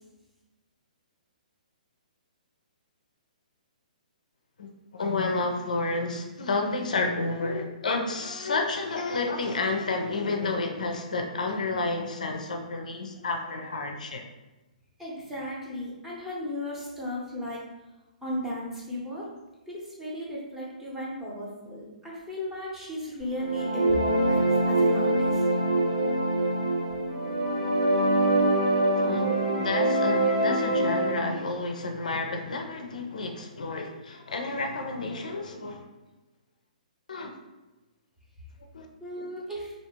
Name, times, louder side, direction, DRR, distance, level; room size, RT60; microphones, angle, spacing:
voice 1, 4.6-14.2 28.8-35.9 37.1-37.3 38.7-38.9, left 3 dB, 65° left, 3 dB, 0.4 m, -30 dB
voice 2, 15.0-17.6 18.2-19.3 19.7-25.4 39.0-39.7, equal, 5° right, -6 dB, 0.8 m, -35 dB
sound 1, 23.3-31.2, right 1 dB, 80° right, 1.4 m, -24 dB
3.3 x 2.7 x 2.8 m, 1.1 s
figure-of-eight pair, 125°, 4 cm